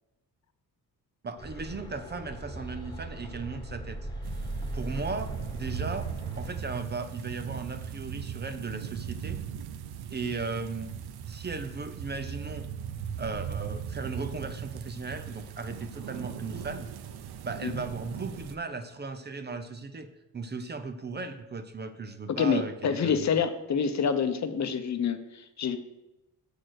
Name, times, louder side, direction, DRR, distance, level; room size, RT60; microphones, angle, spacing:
voice 1, 1.2-4.0 4.7-6.1 6.4-9.4 10.1-10.9 11.3-12.7 13.2-16.9 17.4-23.2, right 4 dB, 30° right, 9 dB, 0.6 m, -37 dB
Mystical Cavern, 1.4-6.6, right 1 dB, 10° left, 1.4 m, -38 dB
sound 1, 4.2-18.6, right 8 dB, 90° right, 0.8 m, -38 dB
voice 2, 22.3-25.8, left 6 dB, 45° left, 9 dB, 0.8 m, -27 dB
7.7 x 6.5 x 6.4 m, 1.0 s
wide cardioid pair, 150°, 37 cm